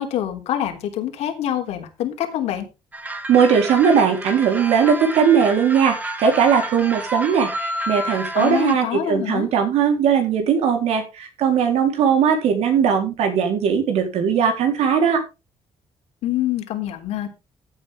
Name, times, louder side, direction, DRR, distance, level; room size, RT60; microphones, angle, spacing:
voice 1, 0.0-2.7 8.4-9.5 16.2-17.3, left 11 dB, 80° left, 3 dB, 3.5 m, -25 dB
sound 1, 2.9-8.7, right 1 dB, 15° right, 2.1 m, -30 dB
voice 2, 3.3-15.2, right 7 dB, 75° right, 5 dB, 4.0 m, -19 dB
14.5 x 9.0 x 3.7 m, 0.28 s
cardioid pair, 145°, 11 cm